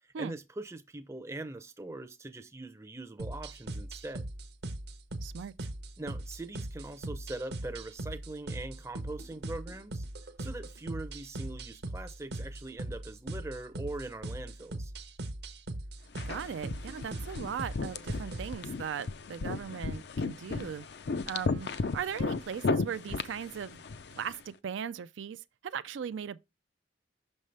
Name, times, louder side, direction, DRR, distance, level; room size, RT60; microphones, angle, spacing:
voice 1, 0.0-4.3 6.0-10.1 10.4-14.9, right 2 dB, 15° right, 0.5 m, -42 dB
sound 1, 3.2-18.6, right 1 dB, 60° right, 0.7 m, -40 dB
voice 2, 5.2-5.7 16.3-20.9 21.3-23.8 24.1-26.5, right 7 dB, 80° right, 0.4 m, -38 dB
sound 2, 16.2-24.4, left 4 dB, 60° left, 0.5 m, -35 dB
6.4 x 5.4 x 3.2 m
head